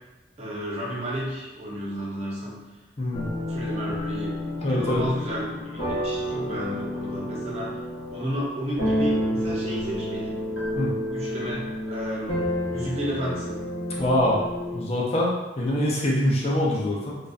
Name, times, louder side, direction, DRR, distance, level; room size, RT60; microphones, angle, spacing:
voice 1, 0.4-2.6 3.5-7.8 8.1-10.5 11.1-12.4 12.7-13.6, right 1 dB, 35° right, -5 dB, 0.6 m, -32 dB
voice 2, 3.0-3.3 4.6-5.0 10.8-10.9 14.0-14.4 14.7-17.2, left 1 dB, 35° left, -4 dB, 0.5 m, -24 dB
sound 1, 3.1-14.8, left 1 dB, 75° left, 0.8 m, -30 dB
2.5 x 2.1 x 2.4 m, 1.1 s
head